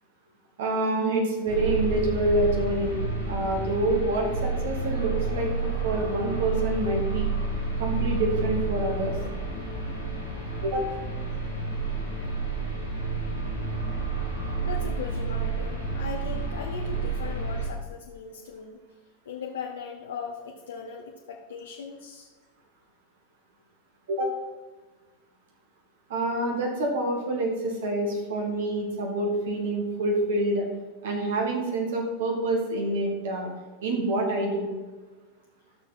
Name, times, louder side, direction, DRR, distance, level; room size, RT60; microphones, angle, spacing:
voice 1, 0.6-3.0 3.3-7.3 7.8-9.2 10.6-10.9 24.1-24.4 26.1-30.7 31.0-33.5 33.8-34.7, right 2 dB, 60° right, 1 dB, 1.9 m, -27 dB
sound 1, 1.5-17.7, right 3 dB, 90° right, 3.2 m, -30 dB
voice 2, 14.6-18.8 19.2-22.3, left 6 dB, 65° left, 0 dB, 1.1 m, -38 dB
13.5 x 6.8 x 4.3 m, 1.2 s
figure-of-eight pair, 90°, 0 cm